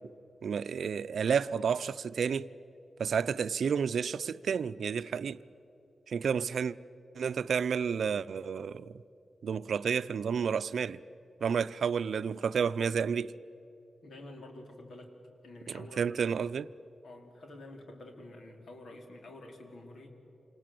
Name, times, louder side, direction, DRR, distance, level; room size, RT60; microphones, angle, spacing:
voice 1, 0.4-2.5 3.0-5.4 6.1-6.8 7.2-8.9 9.4-11.0 11.4-13.3 15.7-16.7, right 6 dB, 80° right, 0.6 m, -31 dB
voice 2, 14.0-15.1 15.4-16.2 17.0-20.1, left 2 dB, 75° left, 4.1 m, -49 dB
28.5 x 27.0 x 7.7 m
wide cardioid pair, 105°, 0 cm